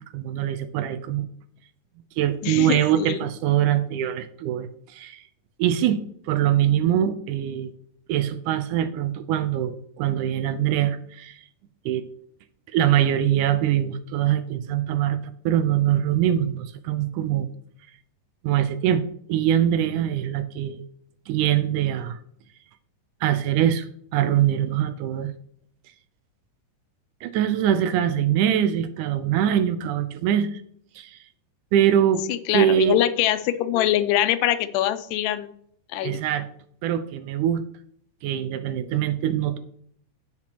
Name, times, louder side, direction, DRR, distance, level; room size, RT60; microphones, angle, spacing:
voice 1, 0.1-1.3 2.2-5.2 5.6-6.0 6.3-7.7 8.1-11.4 11.9-12.0 12.7-17.5 18.4-19.0 19.3-20.8 21.3-22.2 23.2-23.9 24.1-25.3 27.2-30.6 31.0-31.2 31.7-32.2 32.5-33.0 36.0-36.5 36.8-37.6 38.2-39.6, right 10 dB, 80° right, 11 dB, 2.1 m, -23 dB
voice 2, 2.4-3.2 32.3-35.5 35.9-36.2, left 12 dB, 85° left, 12 dB, 2.2 m, -23 dB
17.0 x 5.9 x 2.9 m, 0.65 s
omnidirectional pair, 3.8 m